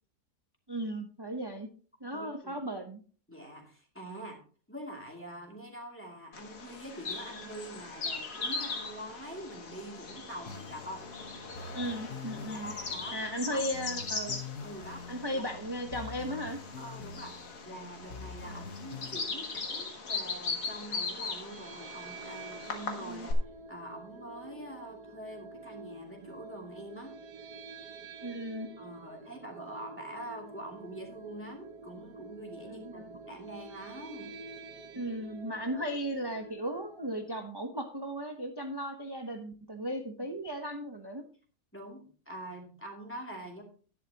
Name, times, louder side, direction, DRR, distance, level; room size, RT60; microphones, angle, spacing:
voice 1, 0.7-1.7 2.0-3.0 11.7-12.7 13.1-14.4 15.1-16.6 18.5-18.6 23.0-23.3 28.2-28.7 32.7-33.1 35.0-41.2, equal, 20° right, 4 dB, 0.8 m, -36 dB
voice 2, 2.1-2.5 3.3-4.4 4.7-11.0 12.3-13.2 13.5-13.7 14.6-15.1 15.3-15.6 16.7-17.4 17.6-23.4 23.7-27.2 28.8-34.4 41.7-43.6, right 1 dB, 5° left, 0 dB, 2.7 m, -45 dB
Bird vocalization bird call bird song, 6.3-23.3, left 4 dB, 75° left, 2.2 m, -39 dB
sound 1, 10.5-19.2, left 5 dB, 55° left, 1.4 m, -46 dB
sound 2, 21.3-37.4, right 3 dB, 70° right, 1.4 m, -48 dB
11.0 x 11.0 x 2.9 m, 0.41 s
omnidirectional pair, 1.7 m